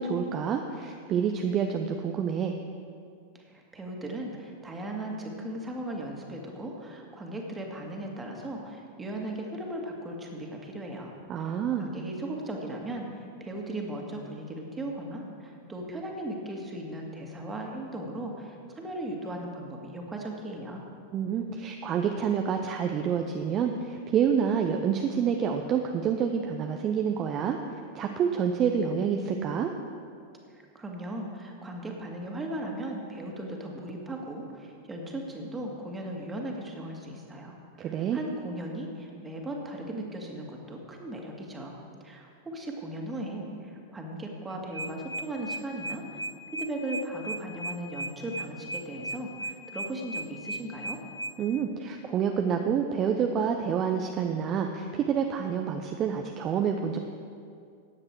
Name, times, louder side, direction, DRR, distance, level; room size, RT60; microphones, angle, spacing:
voice 1, 0.0-2.5 11.3-11.9 21.1-27.6 27.9-29.7 37.8-38.2 51.4-57.0, right 7 dB, 30° right, 4 dB, 0.7 m, -28 dB
voice 2, 3.3-20.8 30.5-46.2 46.5-51.0, right 1 dB, 15° right, 0 dB, 2.1 m, -37 dB
sound 1, 44.5-51.3, right 2 dB, 80° right, 0.7 m, -35 dB
15.0 x 9.7 x 4.7 m, 2.3 s
figure-of-eight pair, 90°, 0 cm